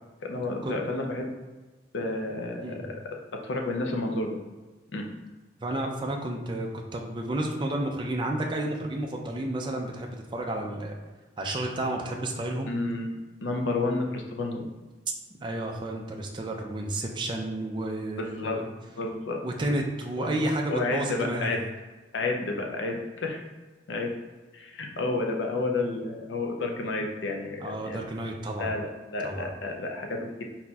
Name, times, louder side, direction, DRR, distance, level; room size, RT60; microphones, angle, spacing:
voice 1, 0.2-1.3 1.9-2.9 3.4-4.4 4.9-5.1 12.7-13.1 13.4-14.7 18.2-18.7 19.0-19.4 20.2-20.3 20.7-21.6 22.1-23.4 23.9-24.1 24.5-28.0 28.6-30.4, left 2 dB, 75° left, 2 dB, 0.6 m, -30 dB
voice 2, 5.6-10.9 11.4-12.7 15.4-18.7 19.4-21.5 27.6-28.7 29.2-29.5, right 1 dB, 25° right, 1 dB, 0.4 m, -31 dB
4.2 x 4.1 x 2.3 m, 1.3 s
head